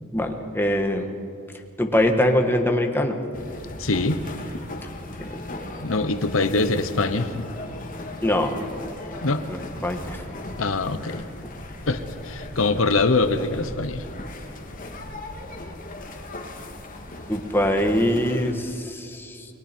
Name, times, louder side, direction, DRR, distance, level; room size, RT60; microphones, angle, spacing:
voice 1, 0.1-1.1 1.8-3.2 5.2-5.4 8.2-8.8 9.2-10.3 17.3-19.5, left 1 dB, 10° left, 3 dB, 1.6 m, -23 dB
sound 1, 3.3-18.5, left 1 dB, 45° left, 2.5 m, -37 dB
voice 2, 3.8-4.2 5.8-7.5 9.2-9.4 10.6-11.2 11.9-14.0, left 3 dB, 85° left, 10 dB, 1.1 m, -23 dB
29.5 x 21.5 x 4.5 m, 2.6 s
head